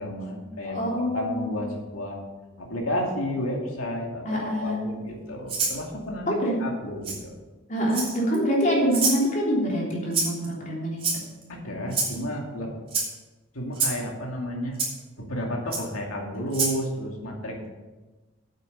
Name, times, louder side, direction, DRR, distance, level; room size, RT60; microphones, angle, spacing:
voice 1, 0.0-2.2 2.6-7.3 11.5-12.7 13.5-14.8 15.2-17.7, equal, 90° left, 0 dB, 2.5 m, -32 dB
voice 2, 0.6-1.6 4.2-4.9 6.3-6.6 7.7-11.2, equal, 35° left, -4 dB, 3.4 m, -26 dB
Rattle (instrument), 5.5-5.8 7.0-7.2 7.9-8.3 8.9-9.2 10.1-10.5 11.0-11.4 11.9-12.2 12.9-13.1 13.7-14.0 14.8-14.9 15.7-15.8 16.5-16.8, right 4 dB, 30° right, 3.6 m, -26 dB
8.9 x 8.3 x 6.8 m, 1.2 s
head